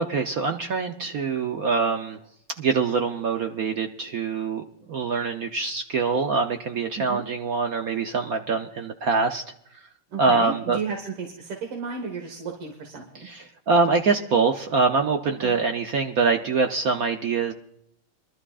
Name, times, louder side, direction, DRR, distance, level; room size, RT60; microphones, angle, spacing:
voice 1, 0.0-2.2 2.6-9.4 10.2-10.8 13.2-17.5, right 4 dB, 65° right, 5 dB, 0.9 m, -24 dB
voice 2, 10.1-13.3 15.4-15.6, right 5 dB, 85° right, 1 dB, 2.5 m, -33 dB
23.0 x 12.5 x 2.4 m, 0.72 s
omnidirectional pair, 2.4 m